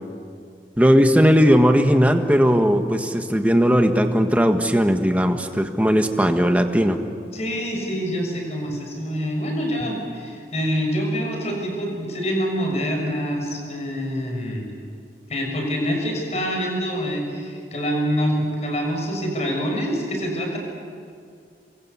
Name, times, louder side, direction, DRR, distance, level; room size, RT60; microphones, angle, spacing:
voice 1, 0.8-7.0, equal, 10° right, 5 dB, 1.5 m, -17 dB
voice 2, 7.3-14.6 15.3-20.6, equal, 40° left, 1 dB, 6.5 m, -26 dB
27.5 x 23.5 x 8.4 m, 2.2 s
head